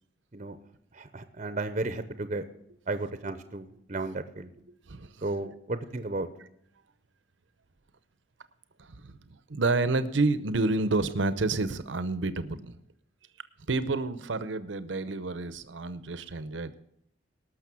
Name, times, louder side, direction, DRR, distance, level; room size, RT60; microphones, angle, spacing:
voice 1, 0.9-2.4 2.9-4.5 5.2-6.3, right 2 dB, 40° right, 11 dB, 0.7 m, -34 dB
voice 2, 4.9-5.5 8.8-12.8 13.7-16.7, right 3 dB, 80° right, 14 dB, 0.8 m, -29 dB
19.0 x 6.4 x 6.1 m, 0.72 s
head